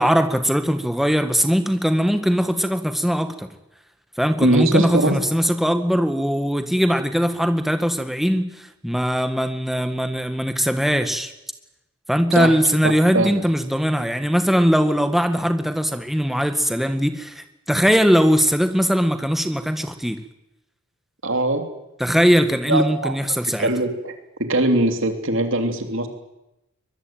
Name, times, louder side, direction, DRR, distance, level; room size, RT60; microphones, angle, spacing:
voice 1, 0.0-3.5 4.2-11.3 12.1-20.2 22.0-23.7, equal, ahead, 8 dB, 1.9 m, -20 dB
voice 2, 4.4-5.2 12.3-12.6 13.1-13.4 21.2-21.6 22.7-23.1 23.6-24.1 24.4-26.1, right 1 dB, 60° right, 6 dB, 3.3 m, -21 dB
23.5 x 22.0 x 9.2 m, 0.91 s
head